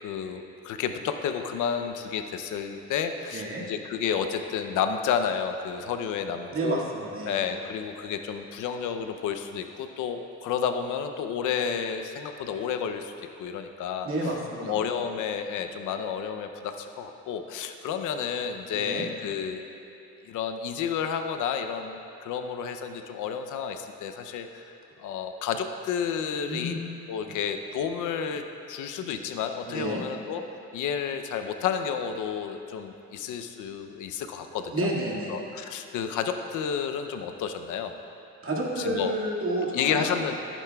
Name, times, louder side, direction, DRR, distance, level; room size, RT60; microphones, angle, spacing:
voice 1, 0.0-6.8 7.3-14.3 14.6-19.6 20.3-26.8 27.1-30.4 30.7-34.9 35.3-38.0 38.8-39.2 39.7-40.4, left 7 dB, 85° left, 7 dB, 0.6 m, -31 dB
voice 2, 3.3-3.6 6.5-7.4 14.0-14.8 18.7-19.1 26.5-26.8 27.3-27.4 29.7-30.0 34.7-35.4 38.4-40.2, right 1 dB, 45° right, -3 dB, 2.0 m, -30 dB
15.0 x 9.1 x 2.3 m, 2.7 s
cardioid pair, 90°, 30 cm